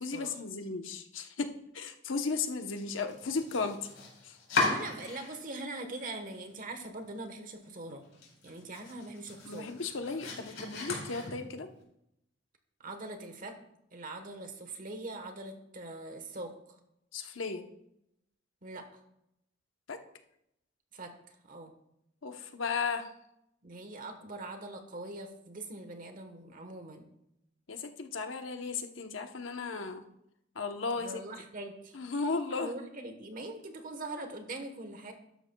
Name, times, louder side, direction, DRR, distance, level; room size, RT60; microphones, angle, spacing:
voice 1, 0.0-3.9 4.2-4.4 9.5-11.7 17.1-17.6 19.9-20.0 22.2-23.1 27.7-30.0 30.5-31.2 31.9-32.7, left 4 dB, 85° left, 6 dB, 0.9 m, -35 dB
Domestic sounds home sounds, 3.0-5.6 5.9-6.7 7.0-7.1 7.6-7.7 8.0-11.7, left 3 dB, 70° left, 4.3 m, -37 dB
voice 2, 4.6-8.0 8.4-9.7 12.8-13.6 13.9-16.5 18.6-19.0 20.9-21.1 21.5-21.7 23.6-27.1 31.0-32.0 32.5-35.1, right 2 dB, 45° right, 6 dB, 1.2 m, -42 dB
12.5 x 11.0 x 2.3 m, 0.80 s
head